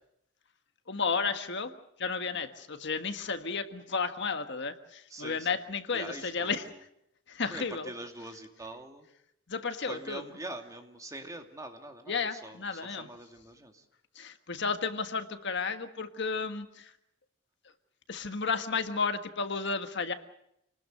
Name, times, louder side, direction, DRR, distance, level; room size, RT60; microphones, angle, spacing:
voice 1, 0.9-6.7 7.3-7.9 9.5-10.2 12.1-13.1 14.1-16.9 18.1-20.1, left 5 dB, 60° left, 8 dB, 1.6 m, -33 dB
voice 2, 5.1-5.5 5.9-6.8 7.5-9.1 9.8-13.8, right 2 dB, 15° right, 4 dB, 2.5 m, -44 dB
28.5 x 19.5 x 6.6 m, 0.77 s
head